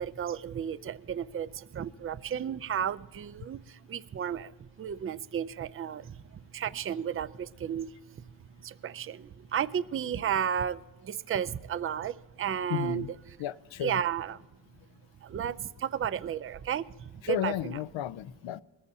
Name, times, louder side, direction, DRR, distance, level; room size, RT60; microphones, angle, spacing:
voice 1, 0.0-13.4 13.8-14.4 15.2-17.8, right 9 dB, 30° right, 16 dB, 0.4 m, -33 dB
voice 2, 12.7-13.1 13.4-14.0 17.2-18.6, left 11 dB, 65° left, 17 dB, 0.6 m, -33 dB
21.0 x 14.0 x 2.7 m, 1.2 s
cardioid pair, 60°, 50 cm